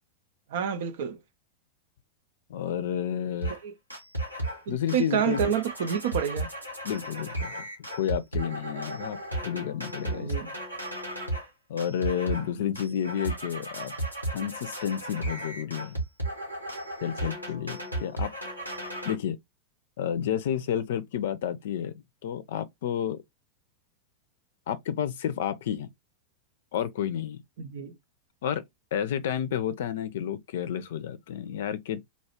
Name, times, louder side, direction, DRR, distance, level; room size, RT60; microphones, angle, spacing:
voice 1, 0.5-1.2 3.6-3.7 4.7-6.5 10.1-10.5 27.6-28.0, right 8 dB, 55° right, 0.5 m, -29 dB
voice 2, 2.5-3.6 4.7-5.6 6.8-7.6 8.0-9.2 9.4-10.3 11.7-13.9 14.3-16.0 17.0-18.3 19.0-19.4 20.0-23.2 24.7-25.9 26.7-27.4 28.4-28.6 28.9-32.0, left 9 dB, 55° left, 0.5 m, -31 dB
sound 1, 3.4-3.6 3.9-4.6 4.9-11.5 11.8-12.5 12.8-19.2, right 1 dB, 90° right, 1.1 m, -34 dB
4.0 x 2.3 x 2.9 m
figure-of-eight pair, 90°, 0 cm